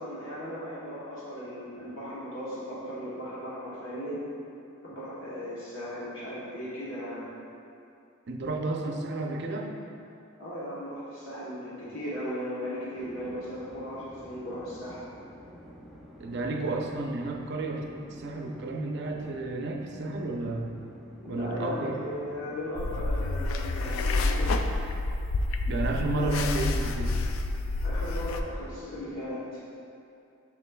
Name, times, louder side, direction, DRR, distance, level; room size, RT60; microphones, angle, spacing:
voice 1, 0.0-4.2 4.8-7.3 10.4-15.0 21.2-24.5 26.2-26.3 27.8-29.6, equal, 70° left, -9 dB, 1.1 m, -37 dB
voice 2, 8.3-9.7 16.2-17.8 18.1-20.7 21.3-22.0 25.7-27.2, right 2 dB, 55° right, 1 dB, 0.6 m, -31 dB
sound 1, 13.0-23.3, equal, ahead, 0.6 m, -49 dB
sound 2, 22.8-28.4, left 2 dB, 90° left, 0.4 m, -28 dB
7.1 x 6.1 x 2.3 m, 2.6 s
head